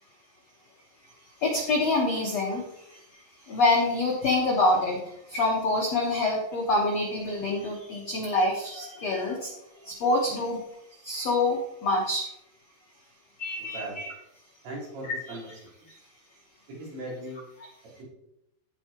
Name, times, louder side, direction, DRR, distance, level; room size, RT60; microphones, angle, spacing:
voice 1, 1.4-3.0 3.4-9.5 9.8-10.6 11.0-12.3 13.4-14.1 15.3-15.4 17.6-17.7, left 2 dB, 75° left, -1 dB, 1.5 m, -26 dB
voice 2, 13.6-14.0 14.6-15.5 16.8-17.4, right 1 dB, 75° right, -7 dB, 6.4 m, -38 dB
15.5 x 5.9 x 3.0 m, 0.83 s
omnidirectional pair, 5.2 m